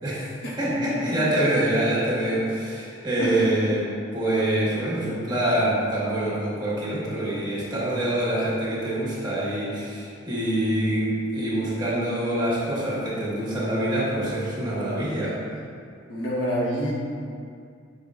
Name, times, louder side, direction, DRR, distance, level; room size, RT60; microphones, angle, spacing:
voice 1, 0.6-3.8 4.1-15.4, right 1 dB, 20° right, -8 dB, 1.4 m, -25 dB
voice 2, 3.2-3.5 16.1-16.9, equal, 70° left, -4 dB, 1.2 m, -26 dB
8.3 x 5.1 x 2.4 m, 2.3 s
head